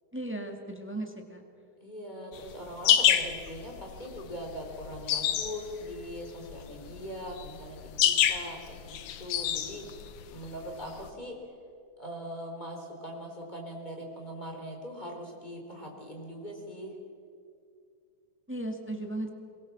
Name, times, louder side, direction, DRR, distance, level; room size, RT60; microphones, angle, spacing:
voice 1, 0.1-1.4 18.5-19.3, right 1 dB, 5° right, 3 dB, 1.4 m, -36 dB
voice 2, 1.8-10.0 10.3-11.4 12.0-17.0, equal, 15° left, 1 dB, 3.9 m, -41 dB
sound 1, 2.3-11.1, left 10 dB, 85° left, 2.6 m, -27 dB
23.0 x 22.5 x 7.4 m, 2.4 s
omnidirectional pair, 3.5 m